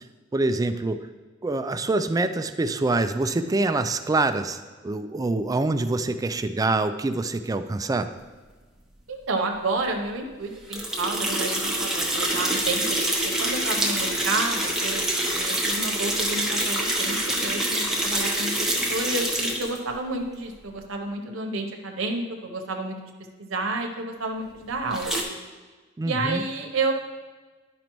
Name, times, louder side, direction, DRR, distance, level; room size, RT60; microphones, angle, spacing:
voice 1, 0.3-1.0 1.4-8.1 26.0-26.4, right 2 dB, 20° right, 10 dB, 0.3 m, -25 dB
voice 2, 9.1-12.8 13.4-23.0 23.4-25.1 26.0-26.9, right 2 dB, 85° right, 3 dB, 0.8 m, -30 dB
sound 1, 10.7-19.8 24.9-25.2, right 1 dB, ahead, 0.9 m, -26 dB
11.0 x 5.1 x 3.0 m, 1.3 s
head